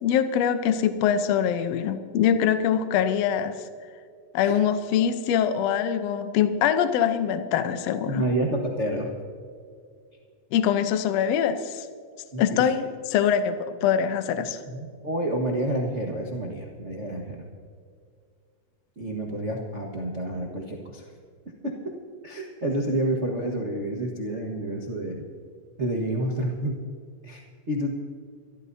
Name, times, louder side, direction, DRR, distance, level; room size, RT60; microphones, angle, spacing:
voice 1, 0.0-3.6 4.3-8.2 10.5-11.9 12.4-14.6, left 8 dB, 70° left, 10 dB, 1.7 m, -23 dB
voice 2, 8.1-9.1 12.3-12.7 14.7-17.4 19.0-21.1 21.6-21.7 22.2-25.3 25.8-26.8 27.2-27.9, right 1 dB, 40° right, -2 dB, 1.0 m, -29 dB
25.0 x 13.0 x 2.7 m, 2.2 s
omnidirectional pair, 3.6 m